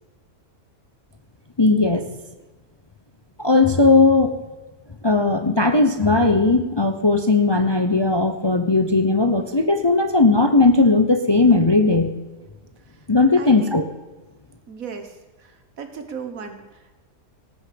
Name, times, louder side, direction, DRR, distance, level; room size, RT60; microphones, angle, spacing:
voice 1, 1.6-2.1 3.4-4.4 5.0-12.2 13.1-13.8, left 3 dB, 25° left, 7 dB, 0.6 m, -17 dB
voice 2, 13.4-13.8 14.7-16.9, right 6 dB, 70° right, 7 dB, 1.8 m, -37 dB
18.0 x 6.4 x 7.6 m, 1.2 s
omnidirectional pair, 1.5 m